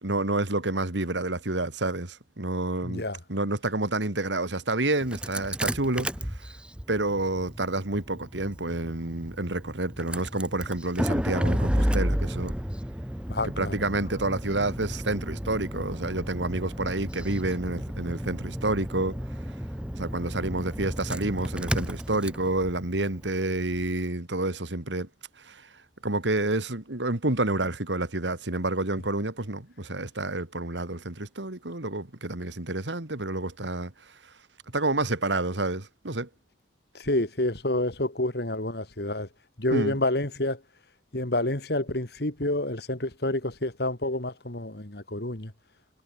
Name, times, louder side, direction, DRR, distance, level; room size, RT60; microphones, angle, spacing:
voice 1, 0.0-3.0 3.3-6.5 6.9-12.5 13.4-19.2 19.9-25.1 25.4-25.7 26.0-33.9 34.2-34.3 34.7-36.3 39.7-40.0, right 2 dB, 90° right, 2.8 m, -29 dB
voice 2, 2.8-3.2 13.3-13.7 36.9-39.3 39.6-40.6 41.1-45.5, left 1 dB, 65° left, 2.9 m, -28 dB
Engine starting, 5.0-24.0, equal, 5° right, 1.2 m, -32 dB
head